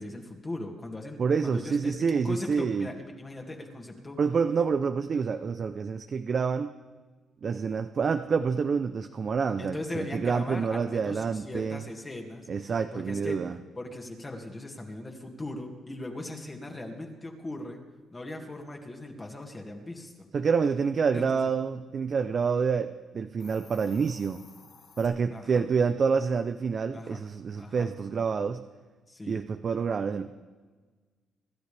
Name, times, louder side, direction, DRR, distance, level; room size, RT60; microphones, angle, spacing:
voice 1, 0.0-4.2 9.6-13.5 13.7-17.8 18.1-20.3 21.1-21.5 25.3-25.6 26.9-27.2 27.6-27.9 29.1-29.4, left 1 dB, 20° left, 1 dB, 2.2 m, -39 dB
voice 2, 1.2-2.9 4.2-6.7 7.4-11.8 12.5-13.5 20.3-24.4 25.0-28.6 29.3-30.4, right 5 dB, 45° right, 9 dB, 0.6 m, -27 dB
Hiss, 23.2-25.1, left 6 dB, 75° left, 3.0 m, -54 dB
26.0 x 12.0 x 3.5 m, 1.4 s
cardioid pair, 90°, 0 cm